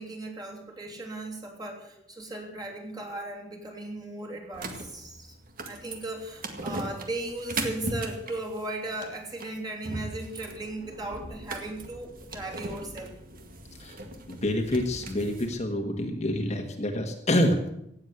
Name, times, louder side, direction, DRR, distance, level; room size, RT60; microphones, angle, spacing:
voice 1, 0.0-5.3 5.7-13.1, right 2 dB, 20° right, -1 dB, 3.1 m, -37 dB
sound 1, 4.5-15.5, right 2 dB, 50° right, 2.0 m, -39 dB
voice 2, 14.3-17.7, left 1 dB, 40° left, 3 dB, 1.6 m, -27 dB
17.5 x 7.7 x 8.0 m, 0.79 s
head